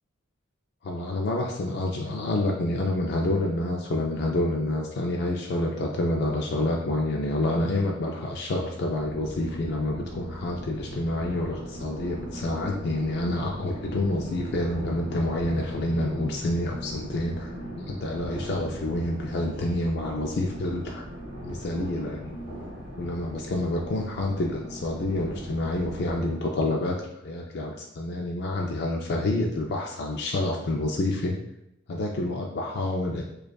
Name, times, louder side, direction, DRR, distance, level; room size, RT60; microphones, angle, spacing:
voice 1, 0.8-17.5 17.9-21.0 21.4-22.3 23.0-31.4 31.9-33.2, left 1 dB, 55° left, 0 dB, 0.4 m, -28 dB
sound 1, 8.9-26.4, equal, 25° right, 1.2 m, -39 dB
4.9 x 2.3 x 2.2 m, 0.85 s
head